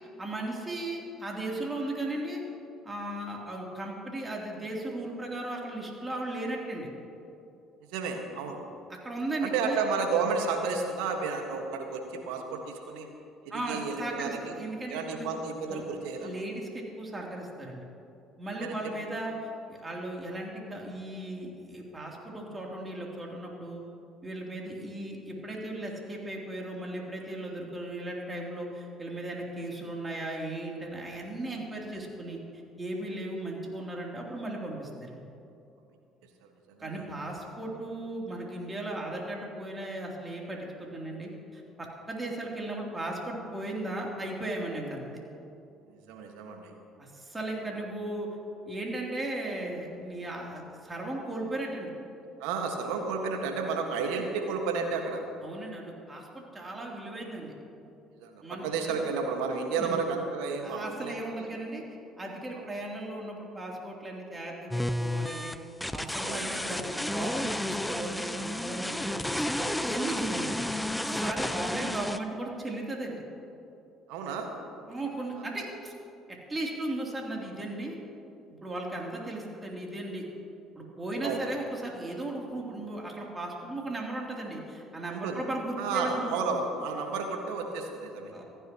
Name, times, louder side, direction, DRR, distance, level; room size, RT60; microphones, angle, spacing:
voice 1, 0.2-2.4 2.8-6.9 9.0-9.8 13.5-15.3 15.7-17.8 18.4-23.8 24.2-32.4 32.8-35.2 36.8-45.1 47.0-48.3 48.6-51.9 55.4-57.5 58.4-59.0 59.8-60.0 60.6-61.8 62.2-65.5 65.9-70.6 71.0-73.2 74.9-75.9 76.3-78.0 78.6-80.3 80.7-86.3 88.3-88.4, right 1 dB, 20° right, -2 dB, 3.3 m, -36 dB
voice 2, 7.9-8.7 9.4-13.1 13.4-14.5 14.9-16.3 18.6-18.9 36.4-37.0 45.9-46.7 52.4-55.2 58.2-61.5 62.5-62.7 66.2-66.6 71.1-71.3 74.1-74.5 75.4-75.5 81.2-81.4 85.1-85.4 85.8-88.3, right 4 dB, 70° right, 3 dB, 1.7 m, -32 dB
sound 1, 64.7-72.2, left 1 dB, 5° left, 0.6 m, -32 dB
27.5 x 10.0 x 3.1 m, 2.7 s
figure-of-eight pair, 55°, 0 cm